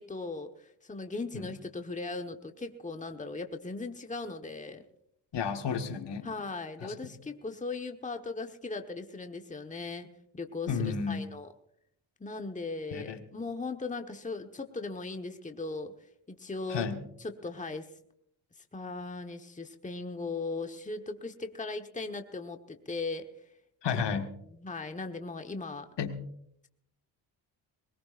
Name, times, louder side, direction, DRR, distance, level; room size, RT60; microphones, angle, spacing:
voice 1, 0.0-4.8 6.2-11.5 12.2-15.9 16.3-16.9 17.2-17.9 18.7-23.3 23.9-24.2 24.5-25.9, left 3 dB, 15° left, 6 dB, 1.3 m, -38 dB
voice 2, 5.3-6.3 6.8-7.1 10.7-11.3 12.9-13.2 16.7-17.0 23.8-24.3 26.0-26.2, left 6 dB, 60° left, 6 dB, 1.7 m, -32 dB
21.0 x 19.5 x 2.6 m, 0.73 s
supercardioid pair, 65°, 48 cm